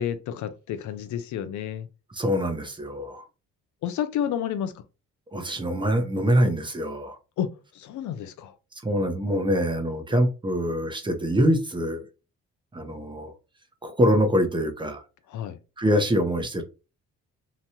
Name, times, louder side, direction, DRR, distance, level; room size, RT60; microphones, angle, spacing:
voice 1, 0.0-1.9 3.8-4.8 7.4-8.6 15.3-15.6, left 9 dB, 70° left, 0.5 m, -30 dB
voice 2, 2.1-3.2 5.3-7.2 8.8-12.1 12.7-13.3 13.8-15.0 15.8-16.6, equal, 15° right, 0.7 m, -24 dB
2.9 x 2.2 x 2.8 m
cardioid pair, 90°, 30 cm